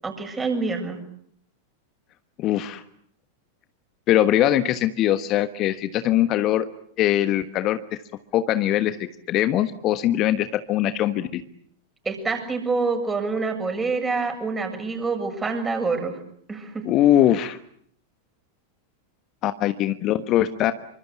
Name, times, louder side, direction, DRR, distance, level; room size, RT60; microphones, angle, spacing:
voice 1, 0.0-1.0 12.0-16.2 16.5-16.9, right 4 dB, 15° right, 5 dB, 7.3 m, -26 dB
voice 2, 2.4-2.8 4.1-6.7 7.0-7.8 8.3-11.4 16.8-17.6 19.4-20.7, left 12 dB, 35° left, 11 dB, 1.3 m, -21 dB
28.0 x 25.0 x 8.2 m, 0.66 s
figure-of-eight pair, 90°, 0 cm